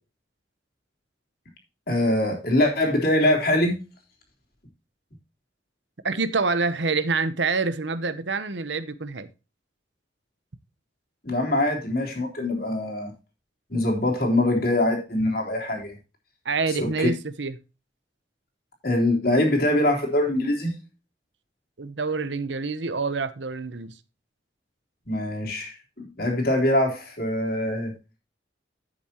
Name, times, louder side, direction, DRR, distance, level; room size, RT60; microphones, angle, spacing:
voice 1, 1.9-3.7 11.2-13.1 13.7-15.9 16.7-17.1 18.8-20.7 25.1-27.9, left 1 dB, 55° left, 3.5 m, -23 dB
voice 2, 6.0-9.3 16.4-17.5 21.8-23.9, right 4 dB, 80° right, 0.9 m, -26 dB
10.5 x 8.4 x 2.9 m
head